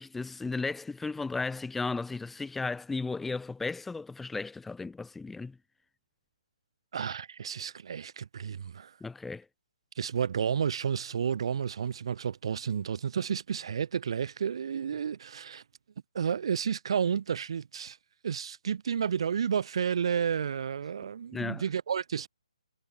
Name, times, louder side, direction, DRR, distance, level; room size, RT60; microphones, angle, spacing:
voice 1, 0.0-5.6 9.0-9.5 21.3-21.6, left 3 dB, 5° left, 2.0 m, -35 dB
voice 2, 6.9-8.9 10.0-15.6 16.1-18.0 18.2-22.3, right 7 dB, 50° right, 5.3 m, -31 dB
figure-of-eight pair, 145°, 4 cm